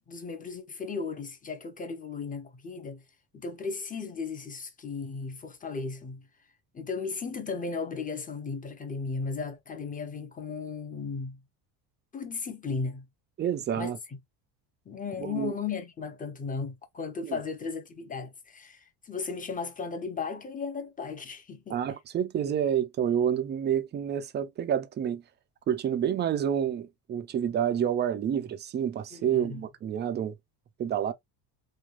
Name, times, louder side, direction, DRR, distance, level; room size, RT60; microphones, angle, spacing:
voice 1, 0.1-3.0 3.3-6.3 6.7-11.4 12.1-13.1 13.7-14.2 14.9-21.8 29.1-29.6, left 4 dB, 15° left, 0.7 m, -36 dB
voice 2, 13.4-14.0 15.2-15.5 17.2-17.4 21.7-25.2 25.7-30.3 30.8-31.1, right 9 dB, 25° right, 0.3 m, -28 dB
3.3 x 2.3 x 2.4 m
supercardioid pair, 90°, 50 cm